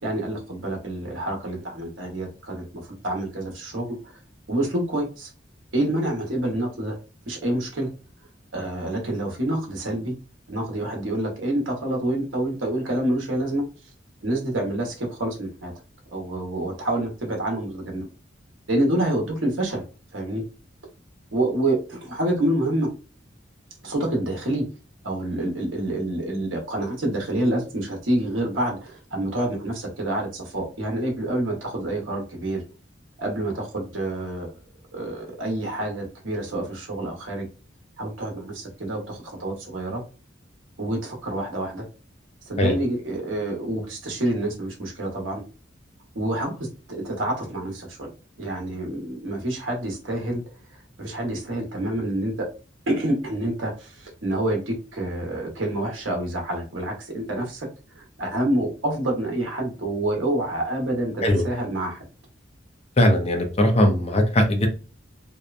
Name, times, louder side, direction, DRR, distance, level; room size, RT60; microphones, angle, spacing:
voice 1, 0.0-3.9 4.5-5.3 5.7-7.0 7.3-7.9 8.5-10.1 10.5-13.6 14.2-15.7 16.1-18.1 18.7-19.8 20.1-20.4 21.3-22.9 23.8-24.6 25.0-32.6 33.2-34.5 34.9-37.5 38.0-40.0 40.8-41.8 42.4-45.4 46.1-48.1 48.4-50.4 51.0-52.3 52.9-57.7 58.0-62.0, right 1 dB, 90° right, 0 dB, 1.0 m, -27 dB
voice 2, 63.0-64.7, left 1 dB, 35° left, 3 dB, 0.5 m, -19 dB
2.8 x 2.1 x 2.4 m, 0.33 s
head